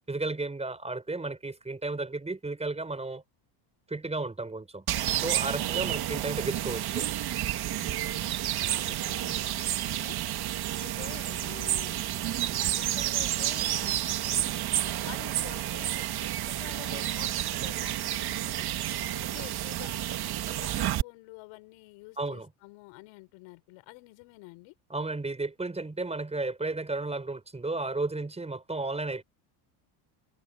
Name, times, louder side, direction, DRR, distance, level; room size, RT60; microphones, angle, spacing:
voice 1, 0.1-3.2 3.9-4.8 5.2-7.1 22.2-22.5 24.9-29.2, right 3 dB, 10° right, 5.6 m, -33 dB
sound 1, 4.9-21.0, right 13 dB, 50° right, 1.8 m, -30 dB
voice 2, 5.6-6.1 7.8-10.2 10.8-12.0 12.5-14.6 15.0-18.7 19.1-20.1 20.4-24.7, left 26 dB, 80° left, 5.5 m, -48 dB
cardioid pair, 120°, 50 cm